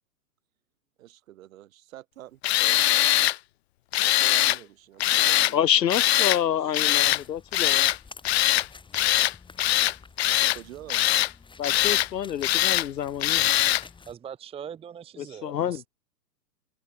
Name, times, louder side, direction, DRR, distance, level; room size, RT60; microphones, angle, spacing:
voice 1, 1.0-3.3 4.0-6.7 10.5-11.2, right 14 dB, 50° right, 4.9 m, -47 dB
Tools, 2.4-3.4 3.9-4.6 5.0-5.5 5.9-6.4 6.7-7.2 7.5-8.0 8.2-8.7 8.9-9.3 9.6-10.6 10.9-11.3 11.6-12.1 12.4-12.9 13.2-13.8, left 15 dB, 40° left, 0.6 m, -22 dB
voice 2, 5.5-7.8 11.6-13.5 15.2-15.8, left 10 dB, 80° left, 0.9 m, -27 dB
sound 1, 6.9-14.1, left 4 dB, 10° left, 8.0 m, -50 dB
voice 3, 14.1-15.9, right 8 dB, 10° right, 1.2 m, -41 dB
hypercardioid pair, 125°, 50 cm